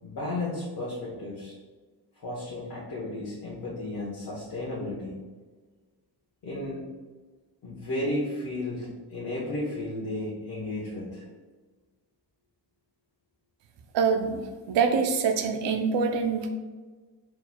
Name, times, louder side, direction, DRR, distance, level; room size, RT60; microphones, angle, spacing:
voice 1, 0.0-1.6 2.2-5.2 6.4-6.8 7.6-11.3, left 1 dB, 55° left, -6 dB, 1.2 m, -33 dB
voice 2, 13.9-14.4 14.7-16.5, right 5 dB, 80° right, 5 dB, 0.6 m, -25 dB
4.4 x 4.3 x 2.3 m, 1.4 s
cardioid pair, 95°, 44 cm